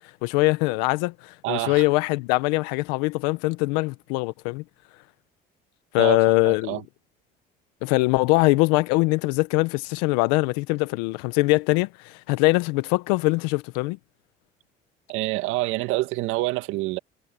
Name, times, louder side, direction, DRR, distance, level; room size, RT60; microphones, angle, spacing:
voice 1, 0.2-4.6 5.9-6.8 7.8-14.0, left 23 dB, 85° left, 1.3 m, -22 dB
voice 2, 1.4-1.8 6.0-6.2 6.4-6.8 15.1-17.0, right 19 dB, 75° right, 2.1 m, -27 dB
supercardioid pair, 75°, 21 cm